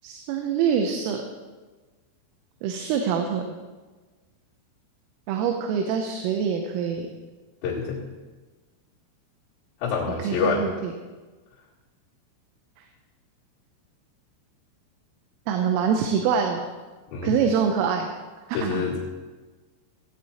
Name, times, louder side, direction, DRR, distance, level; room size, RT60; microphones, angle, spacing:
voice 1, 0.0-1.2 2.6-3.4 5.3-7.1 10.2-10.9 15.5-16.7 17.2-18.1 18.6-18.8, right 7 dB, 85° right, 4 dB, 3.4 m, -25 dB
voice 2, 7.6-8.0 9.8-10.7 17.1-17.3 18.5-19.0, left 5 dB, 65° left, -9 dB, 4.1 m, -26 dB
17.0 x 8.8 x 4.3 m, 1.3 s
omnidirectional pair, 5.7 m